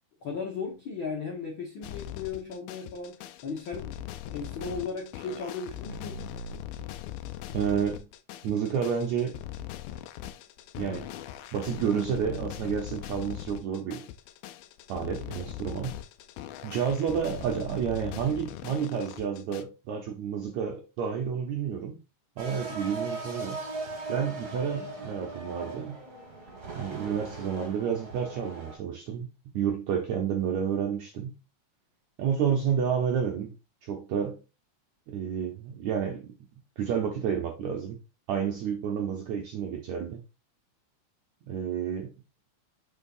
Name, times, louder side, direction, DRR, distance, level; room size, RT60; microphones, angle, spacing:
voice 1, 0.2-3.2 3.4-4.0 4.3-6.3, left 5 dB, 70° left, 1.1 m, -36 dB
sound 1, 1.8-19.6, left 10 dB, 85° left, 2.5 m, -40 dB
voice 2, 7.5-8.0 8.4-9.4 10.7-11.1 11.5-14.1 14.9-15.9 16.6-22.0 22.4-23.6 24.1-26.0 26.7-29.3 29.5-31.3 32.2-33.5 33.8-34.4 35.1-36.3 36.8-38.0 38.3-40.2 41.5-42.1, right 7 dB, 75° right, 1.7 m, -30 dB
sound 2, 22.4-28.8, right 3 dB, 40° right, 1.5 m, -39 dB
6.8 x 5.4 x 2.6 m
omnidirectional pair, 4.3 m